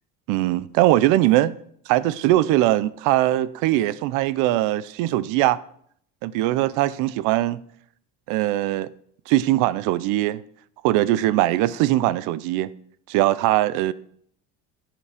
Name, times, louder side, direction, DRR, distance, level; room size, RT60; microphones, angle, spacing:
voice 1, 0.3-1.5 1.9-5.6 6.2-7.6 8.3-8.9 9.3-10.4 10.8-12.7 13.1-13.9, right 15 dB, 65° right, 0.6 m, -21 dB
15.5 x 6.1 x 5.0 m
cardioid pair, 170°, 35 cm